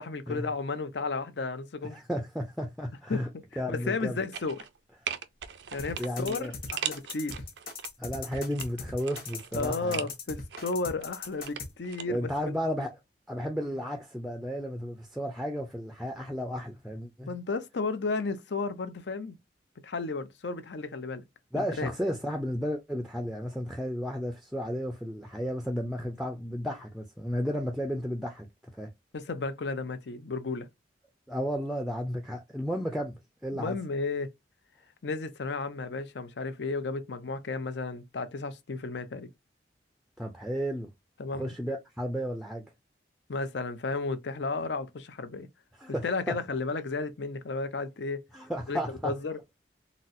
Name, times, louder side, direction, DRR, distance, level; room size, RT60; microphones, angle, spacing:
voice 1, 0.0-2.0 3.1-3.2 3.7-4.6 5.7-7.4 9.5-12.3 17.3-19.4 19.8-21.2 21.8-21.9 29.1-30.7 33.5-34.3 35.0-39.3 41.2-41.5 43.3-45.5 46.0-48.2 48.7-49.4, left 3 dB, 70° left, 0.6 m, -33 dB
voice 2, 1.8-3.3 3.6-4.2 6.0-6.5 8.0-10.1 12.1-12.9 13.3-17.3 21.5-28.5 28.7-28.9 31.3-33.8 40.2-40.9 41.3-42.6 45.8-46.3 48.3-49.1, equal, ahead, 0.4 m, -33 dB
sound 1, 4.3-4.8 5.1-7.9 8.3-10.1 10.5-12.0 12.3-12.4, right 9 dB, 70° right, 0.4 m, -39 dB
sound 2, 5.8-11.7, left 4 dB, 55° left, 1.0 m, -39 dB
4.0 x 2.0 x 2.5 m
head